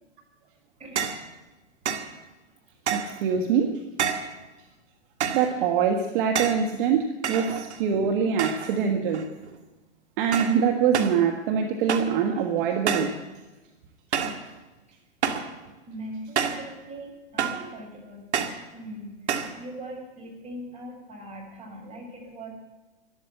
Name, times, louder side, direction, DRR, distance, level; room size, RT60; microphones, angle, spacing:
voice 1, 0.8-1.1 15.9-18.3 18.7-22.5, right 1 dB, 20° right, 0 dB, 5.6 m, -40 dB
sound 1, 1.0-1.3 1.8-2.1 2.9-3.2 4.0-4.4 5.2-5.5 6.3-6.7 7.2-7.9 8.4-8.8 9.1-9.5 10.3-10.6 10.9-11.2 11.9-12.2 12.9-13.2 14.1-14.4 15.2-15.5 16.4-16.7 17.4-17.7 18.3-18.6 19.3-19.6, right 7 dB, 70° right, 1.9 m, -28 dB
voice 2, 2.9-3.8 5.3-9.3 10.2-13.2, right 7 dB, 50° right, 5 dB, 1.5 m, -24 dB
13.0 x 12.5 x 7.8 m, 1.1 s
hypercardioid pair, 120°, 35 cm